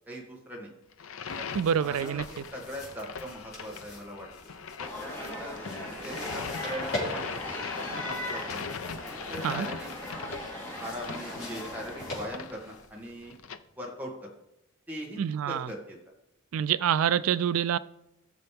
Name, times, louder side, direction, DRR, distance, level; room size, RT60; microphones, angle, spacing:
voice 1, 0.1-0.7 1.4-1.5 1.8-4.3 5.0-5.6 6.0-8.6 9.3-9.9 10.8-13.3 13.8-14.3 14.9-15.2 15.5-16.0, equal, 10° right, 2.0 m, -40 dB
sound 1, 0.9-13.6, left 5 dB, 75° left, 0.6 m, -40 dB
sound 2, 1.3-13.4, left 1 dB, 45° left, 4.2 m, -43 dB
voice 2, 1.5-2.4 9.4-9.7 15.2-15.7 16.5-17.8, right 9 dB, 80° right, 0.3 m, -26 dB
sound 3, 4.8-12.3, equal, 10° left, 2.3 m, -39 dB
17.0 x 6.8 x 3.5 m
head